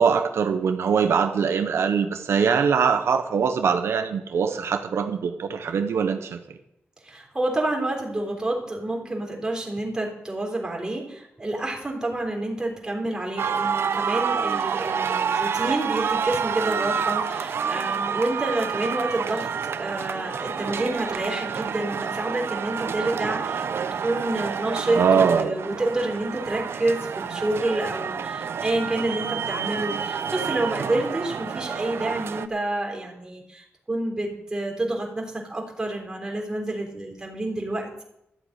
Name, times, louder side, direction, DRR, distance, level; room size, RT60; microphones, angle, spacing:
voice 1, 0.0-6.4 24.9-25.5, right 6 dB, 85° right, 7 dB, 1.0 m, -22 dB
voice 2, 7.0-38.0, right 2 dB, 15° right, -1 dB, 3.6 m, -28 dB
sound 1, 13.4-32.5, right 6 dB, 70° right, 0.7 m, -28 dB
13.0 x 8.2 x 8.8 m, 0.81 s
wide cardioid pair, 155°, 4 cm